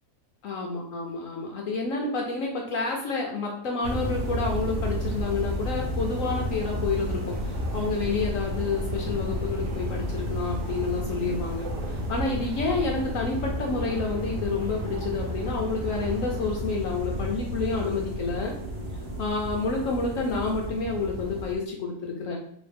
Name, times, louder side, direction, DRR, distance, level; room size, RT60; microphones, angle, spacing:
voice 1, 0.4-18.5 19.2-22.4, left 3 dB, 70° left, 0 dB, 0.8 m, -29 dB
sound 1, 3.8-21.5, equal, 45° right, 1.1 m, -32 dB
sound 2, 6.0-16.5, right 4 dB, 65° right, 0.9 m, -41 dB
3.1 x 3.1 x 3.3 m, 0.70 s
omnidirectional pair, 1.9 m